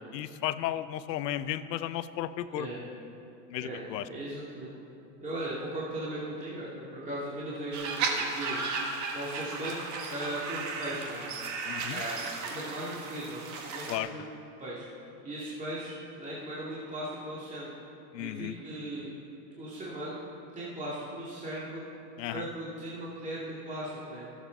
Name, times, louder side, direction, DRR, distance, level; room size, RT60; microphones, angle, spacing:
voice 1, 0.1-2.7 3.5-4.1 11.6-12.0 13.9-14.1 18.1-18.5 22.2-22.5, left 13 dB, 80° left, 14 dB, 0.7 m, -34 dB
voice 2, 2.5-2.8 3.6-4.7 5.2-8.6 9.1-9.8 10.1-11.2 11.9-14.3 14.6-14.8 15.2-17.7 18.2-19.1 19.5-20.2 20.5-21.8 22.3-24.3, right 1 dB, 15° right, -8 dB, 2.4 m, -38 dB
sound 1, 7.7-14.0, right 4 dB, 35° right, 1.7 m, -35 dB
23.0 x 7.9 x 4.0 m, 2.7 s
supercardioid pair, 130°, 49 cm